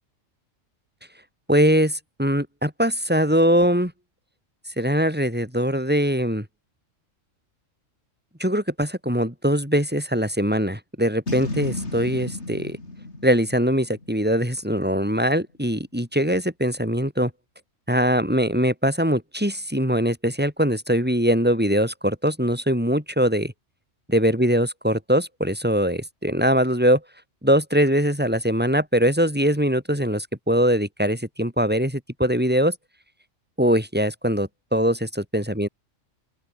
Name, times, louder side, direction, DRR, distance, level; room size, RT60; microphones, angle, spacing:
voice 1, 1.5-3.9 4.8-6.5 8.4-12.8 13.2-17.3 17.9-23.5 24.1-27.0 27.4-32.8 33.6-35.7, equal, 5° right, 6.9 m, -22 dB
Boom, 11.3-14.6, left 2 dB, 60° left, 4.6 m, -33 dB
open air
omnidirectional pair, 1.3 m